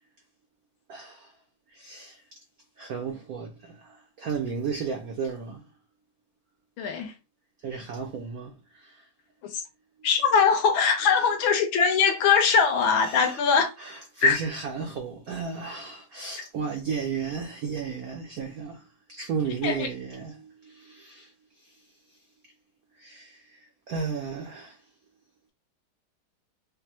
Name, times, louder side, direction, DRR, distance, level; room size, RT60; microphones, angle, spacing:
voice 1, 0.9-1.3 1.7-2.2 2.8-5.6 7.6-9.1 11.2-11.3 12.4-12.6 13.0-18.9 19.2-21.8 23.0-24.8, right 6 dB, 80° right, 0.8 m, -34 dB
voice 2, 6.8-7.1 9.5-9.6 10.0-13.7 14.2-14.4 19.6-19.9, left 6 dB, 75° left, 1.4 m, -21 dB
5.3 x 2.1 x 2.9 m
omnidirectional pair, 2.3 m